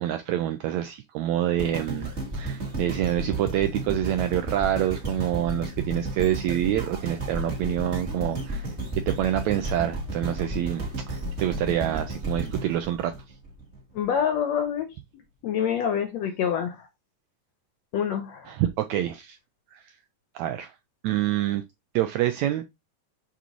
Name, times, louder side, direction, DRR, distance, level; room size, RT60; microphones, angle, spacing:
voice 1, 0.0-13.1 18.5-19.4 19.7-19.9 20.3-20.7 21.0-21.6 21.9-22.6, right 12 dB, 85° right, 1.6 m, -27 dB
sound 1, 1.6-13.8 14.3-14.4, right 2 dB, 25° right, 1.6 m, -33 dB
voice 2, 13.9-14.9 15.4-16.9 17.9-18.5, left 8 dB, 75° left, 1.6 m, -26 dB
6.7 x 5.0 x 3.0 m
omnidirectional pair, 3.8 m